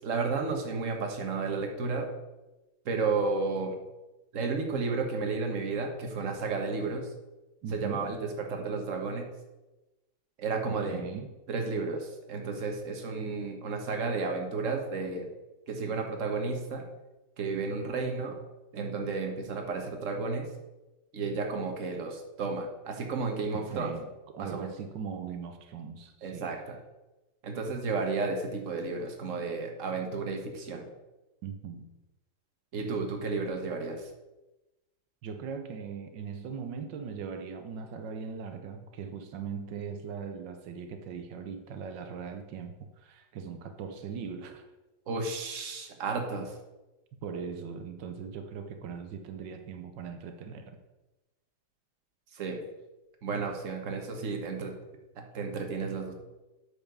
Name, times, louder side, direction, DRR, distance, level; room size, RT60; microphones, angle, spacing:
voice 1, 0.0-2.1 2.8-3.7 4.3-7.0 7.7-8.2 8.5-9.3 10.4-11.1 11.5-15.3 15.7-16.8 17.4-18.4 18.7-20.5 21.1-23.9 24.5-24.7 26.2-26.8 27.4-30.8 32.7-34.1 45.1-46.5 52.3-52.6 53.2-54.7 55.3-56.1, right 4 dB, 45° right, 3 dB, 1.6 m, -32 dB
voice 2, 7.6-8.0 10.7-11.3 23.5-26.5 31.4-31.9 35.2-44.6 47.2-50.8, right 6 dB, 85° right, 7 dB, 1.5 m, -40 dB
8.5 x 4.9 x 6.8 m, 1.1 s
omnidirectional pair, 1.9 m